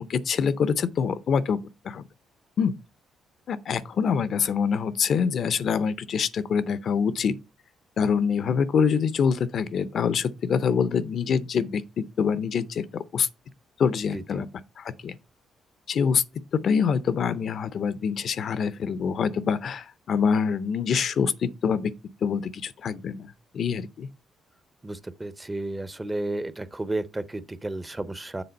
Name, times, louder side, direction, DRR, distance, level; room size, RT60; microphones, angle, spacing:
voice 1, 0.0-1.6 1.8-2.0 2.6-2.7 3.5-7.4 8.0-13.3 13.8-14.5 14.8-15.2 15.9-16.2 16.5-21.9 22.2-24.1, left 6 dB, 60° left, 0.5 m, -25 dB
voice 2, 24.8-28.4, right 2 dB, 15° right, 0.6 m, -32 dB
6.9 x 3.7 x 5.2 m
cardioid pair, 90°, 0 cm